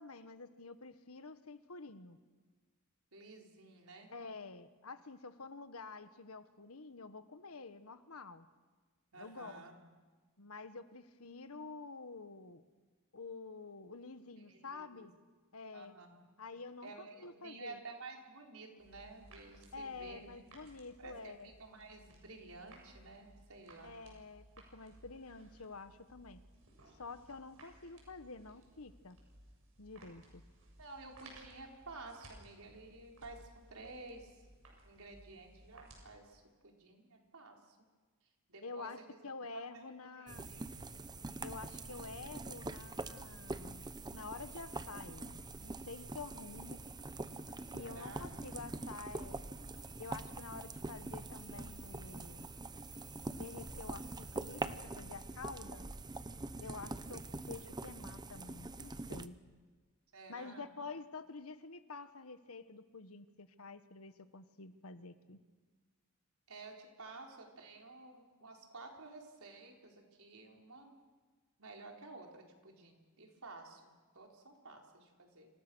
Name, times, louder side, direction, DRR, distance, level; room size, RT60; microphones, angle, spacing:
voice 1, 0.0-2.2 4.1-8.5 9.2-9.6 10.4-12.6 13.1-15.1 15.5-16.0 16.4-17.8 19.7-21.5 23.8-24.4 24.7-26.4 27.0-29.2 29.8-30.4 38.6-40.5 41.4-43.8 44.1-46.8 47.7-49.4 50.0-52.5 53.3-55.9 56.6-59.4 60.3-65.4, left 4 dB, 85° left, 11 dB, 1.5 m, -49 dB
voice 2, 3.1-4.1 9.1-9.7 14.4-15.1 15.7-16.3 16.8-20.3 21.0-24.0 30.8-34.4 34.8-37.8 38.5-39.2 39.5-40.7 47.8-48.3 56.6-56.9 60.1-60.7 66.5-70.9 71.6-75.5, right 3 dB, 90° right, 1 dB, 4.5 m, -52 dB
sound 1, 18.8-36.0, right 1 dB, 70° right, 7.0 m, -60 dB
sound 2, 40.3-59.3, right 2 dB, 20° right, 0.8 m, -44 dB
29.0 x 27.0 x 6.4 m, 1.4 s
head